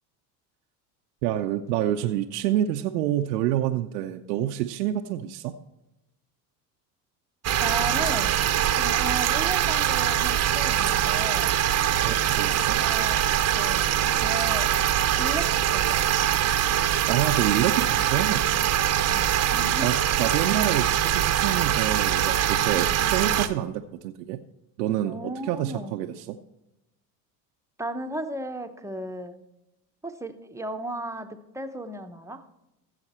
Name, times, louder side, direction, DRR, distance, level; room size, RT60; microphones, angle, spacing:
voice 1, 1.2-5.5 12.0-12.8 17.1-18.4 19.6-24.4 24.8-26.4, right 12 dB, 85° right, 5 dB, 0.7 m, -27 dB
sound 1, 7.4-23.5, right 11 dB, 35° right, 0.8 m, -23 dB
voice 2, 7.6-8.4 8.7-11.5 12.4-13.3 13.5-14.7 15.2-16.1 19.1-19.9 22.8-23.1 25.0-26.0 27.8-29.4 30.0-32.4, right 1 dB, 5° right, 6 dB, 0.9 m, -35 dB
15.0 x 7.2 x 4.3 m, 0.93 s
hypercardioid pair, 80°, 46 cm